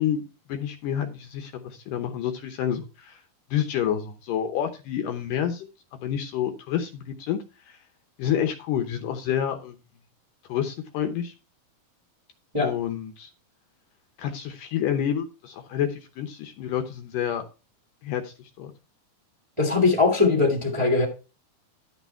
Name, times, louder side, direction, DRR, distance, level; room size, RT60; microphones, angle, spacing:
voice 1, 0.0-3.2 3.5-7.4 7.7-7.8 8.2-9.8 10.4-11.3 12.6-13.3 14.2-17.5 18.0-18.7, left 9 dB, 70° left, 2.3 m, -29 dB
voice 2, 19.6-21.1, left 3 dB, 10° right, 1.4 m, -21 dB
11.5 x 6.0 x 4.3 m
omnidirectional pair, 4.4 m